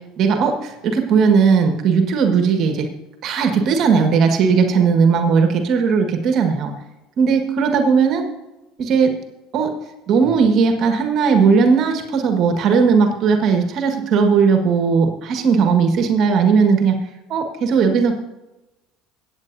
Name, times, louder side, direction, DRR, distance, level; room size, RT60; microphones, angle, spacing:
voice 1, 0.2-2.9 3.2-6.7 7.2-8.3 8.8-9.2 9.5-9.7 10.1-17.0 17.3-18.1, right 5 dB, 55° right, 5 dB, 1.7 m, -17 dB
23.0 x 8.7 x 2.7 m, 1.0 s
hypercardioid pair, 70°, 0 cm